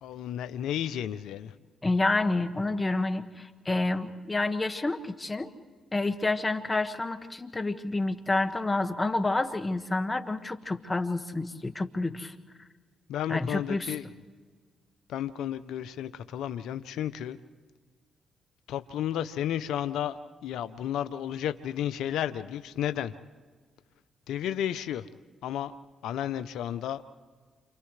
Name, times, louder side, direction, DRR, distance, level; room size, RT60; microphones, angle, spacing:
voice 1, 0.0-1.5 13.1-14.0 15.1-17.4 18.7-23.1 24.3-25.1 25.4-25.8 26.0-27.0, left 10 dB, 85° left, 12 dB, 0.6 m, -32 dB
voice 2, 1.8-5.5 5.9-12.3 13.3-13.9, left 2 dB, 25° left, 7 dB, 1.7 m, -29 dB
29.0 x 27.5 x 3.3 m, 1.5 s
supercardioid pair, 60°, 0 cm